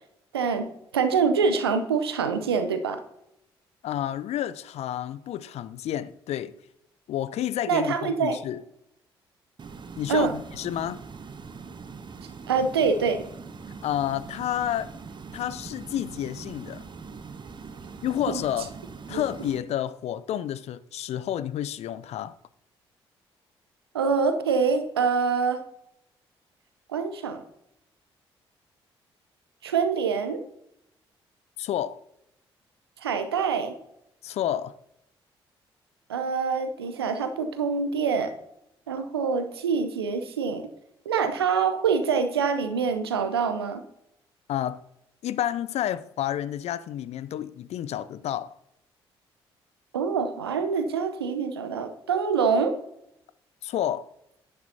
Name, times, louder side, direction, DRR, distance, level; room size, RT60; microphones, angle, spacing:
voice 1, 0.3-0.7 0.9-3.0 7.7-8.4 10.1-10.3 12.5-13.2 18.3-18.4 19.1-19.2 23.9-25.6 26.9-27.4 29.6-30.4 33.0-33.7 36.1-38.3 38.9-40.7 41.1-43.8 49.9-52.7, right 5 dB, 85° right, 0.7 m, -25 dB
voice 2, 3.8-6.6 7.1-8.6 10.0-11.0 13.8-14.9 15.3-16.8 18.0-18.7 19.1-22.4 31.6-32.0 34.2-34.7 44.5-44.8 45.2-48.5 53.6-54.1, left 11 dB, 55° left, 0.5 m, -30 dB
sound 1, 9.6-19.6, right 5 dB, 35° right, 0.9 m, -42 dB
10.5 x 8.8 x 2.8 m
figure-of-eight pair, 45°, 13 cm